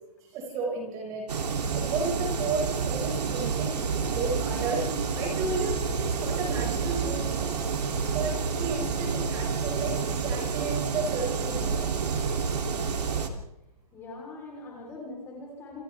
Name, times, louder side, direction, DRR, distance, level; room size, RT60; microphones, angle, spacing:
voice 1, 0.3-7.5 8.1-8.3 8.6-11.9, right 3 dB, 20° right, 0 dB, 5.3 m, -33 dB
sound 1, 1.3-13.3, right 5 dB, 85° right, 2.9 m, -29 dB
voice 2, 13.9-15.8, left 2 dB, 10° left, -2 dB, 3.9 m, -42 dB
28.0 x 27.5 x 3.5 m, 0.88 s
hypercardioid pair, 175°, 20 cm